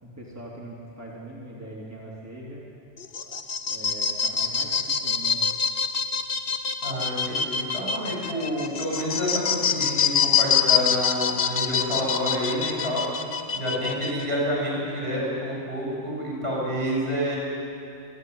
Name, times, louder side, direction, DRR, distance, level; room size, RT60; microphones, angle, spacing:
voice 1, 0.0-2.7 3.7-5.4, right 1 dB, 15° right, -6 dB, 3.4 m, -41 dB
sound 1, 3.0-14.3, left 7 dB, 55° left, 1.0 m, -25 dB
voice 2, 6.8-13.1 13.5-17.4, equal, 60° right, -4 dB, 7.5 m, -28 dB
28.5 x 11.5 x 9.5 m, 2.7 s
omnidirectional pair, 1.2 m